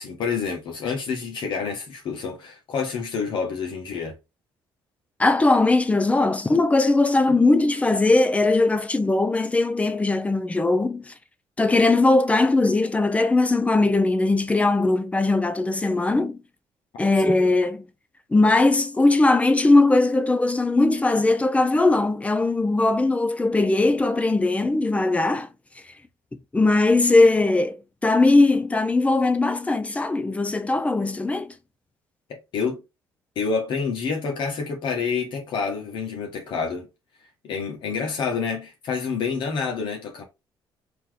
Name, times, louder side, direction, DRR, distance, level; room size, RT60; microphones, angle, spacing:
voice 1, 0.0-4.1 32.3-32.8 33.3-36.9 37.4-40.2, left 5 dB, 65° left, 1.7 m, -28 dB
voice 2, 5.2-11.1 11.6-16.4 17.0-17.8 18.3-25.5 26.5-27.8 28.0-31.5, left 2 dB, 15° left, 0.7 m, -20 dB
4.3 x 3.1 x 3.7 m
cardioid pair, 105°, 9 cm